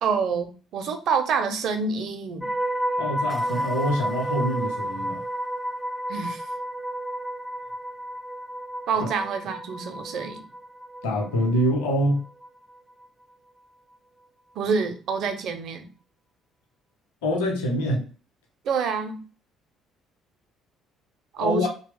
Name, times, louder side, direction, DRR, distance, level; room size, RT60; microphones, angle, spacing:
voice 1, 0.0-2.5 6.1-6.4 8.9-10.4 14.6-15.9 18.6-19.2 21.3-21.7, right 5 dB, 55° right, 7 dB, 0.6 m, -27 dB
sound 1, 2.4-12.5 12.8-13.1, right 1 dB, 5° right, 0.4 m, -31 dB
voice 2, 3.0-5.2 9.0-9.1 11.0-12.2 17.2-18.0 21.4-21.7, equal, 70° left, 1 dB, 0.9 m, -25 dB
2.9 x 2.2 x 3.5 m, 0.37 s
figure-of-eight pair, 50°, 0 cm